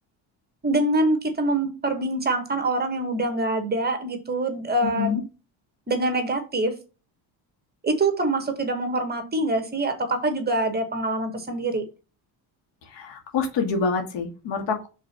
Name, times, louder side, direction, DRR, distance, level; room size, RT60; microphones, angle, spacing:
voice 1, 0.6-5.2 5.9-6.8 7.8-11.8, right 2 dB, 20° right, 7 dB, 1.5 m, -25 dB
voice 2, 12.9-14.9, left 5 dB, 70° left, 5 dB, 2.2 m, -26 dB
5.5 x 4.0 x 5.6 m, 0.32 s
cardioid pair, 125°, 44 cm